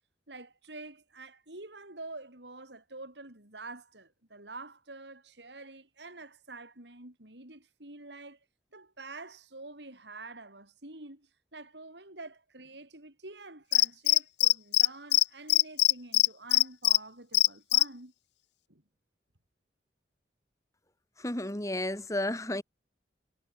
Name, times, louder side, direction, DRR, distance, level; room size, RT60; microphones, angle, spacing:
voice 1, 0.3-8.4 8.7-18.1 18.7-18.8, right 2 dB, 85° right, 5.9 m, -47 dB
Cricket, 13.7-14.9 15.1-15.2 15.5-17.0 17.3-17.8, left 16 dB, 85° left, 0.9 m, -21 dB
voice 2, 21.2-22.6, left 1 dB, 20° left, 2.3 m, -32 dB
head